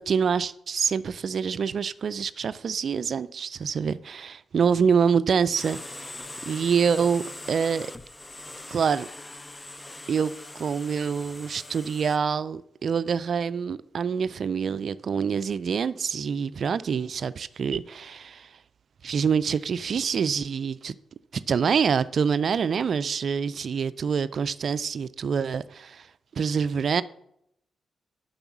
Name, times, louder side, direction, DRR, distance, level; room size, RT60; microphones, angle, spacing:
voice 1, 0.0-6.1 6.5-7.9 8.7-9.1 10.1-18.5 19.0-20.9 21.5-26.1 26.4-27.0, right 6 dB, 65° right, 0.3 m, -26 dB
sound 1, 5.6-12.2, left 2 dB, 20° left, 0.5 m, -41 dB
7.0 x 5.5 x 7.1 m
supercardioid pair, 45°, 0 cm